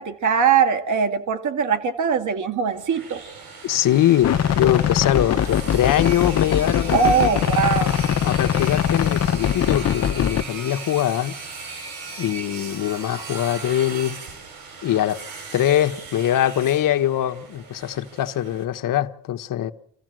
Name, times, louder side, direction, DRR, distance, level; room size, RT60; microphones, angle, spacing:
voice 1, 0.0-3.2 6.9-8.0, right 6 dB, 55° right, 2.1 m, -21 dB
sound 1, 2.7-18.6, right 4 dB, 90° right, 6.8 m, -37 dB
voice 2, 3.6-7.3 8.2-11.3 12.2-14.2 14.8-15.2 15.5-19.7, left 12 dB, 65° left, 1.2 m, -22 dB
sound 2, 4.2-10.4, left 9 dB, 45° left, 0.8 m, -22 dB
27.5 x 15.0 x 7.6 m
cardioid pair, 125°, 36 cm